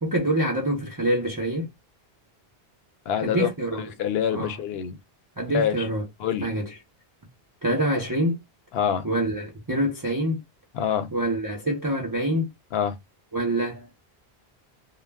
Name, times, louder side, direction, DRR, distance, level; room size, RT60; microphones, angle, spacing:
voice 1, 0.0-1.7 3.2-3.9 4.3-4.6 5.4-6.1 6.4-6.7 7.6-8.4 9.0-10.4 11.1-12.5 13.3-13.9, right 1 dB, 25° right, 0.5 m, -26 dB
voice 2, 3.1-3.5 3.8-5.0 5.5-5.7 6.2-6.5 8.7-9.1 10.7-11.1 12.7-13.0, left 8 dB, 75° left, 0.8 m, -25 dB
2.3 x 2.0 x 3.3 m
omnidirectional pair, 1.1 m